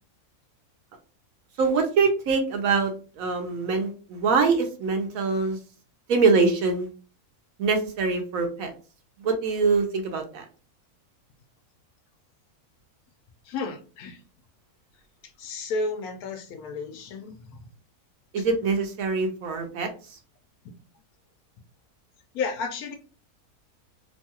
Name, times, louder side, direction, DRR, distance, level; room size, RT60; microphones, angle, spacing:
voice 1, 1.6-5.6 6.1-6.9 7.6-8.7 9.2-10.4 18.3-19.9, right 4 dB, 70° right, 4 dB, 1.0 m, -24 dB
voice 2, 13.4-14.2 15.4-17.7 18.4-18.5 22.3-23.0, left 4 dB, 75° left, 5 dB, 1.1 m, -32 dB
3.0 x 2.3 x 2.8 m, 0.37 s
omnidirectional pair, 1.6 m